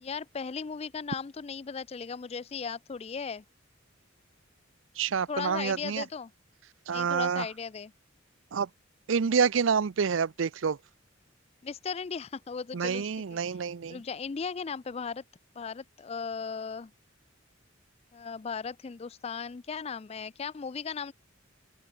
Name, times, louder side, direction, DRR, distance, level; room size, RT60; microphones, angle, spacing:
voice 1, 0.0-3.4 5.3-6.3 6.9-7.9 11.6-13.4 13.9-15.2 15.6-16.9 18.1-21.1, left 5 dB, 30° left, 0.4 m, -37 dB
voice 2, 5.0-6.0 6.9-7.4 8.5-8.7 9.1-10.8 12.7-14.0, right 6 dB, 70° right, 0.5 m, -28 dB
open air
head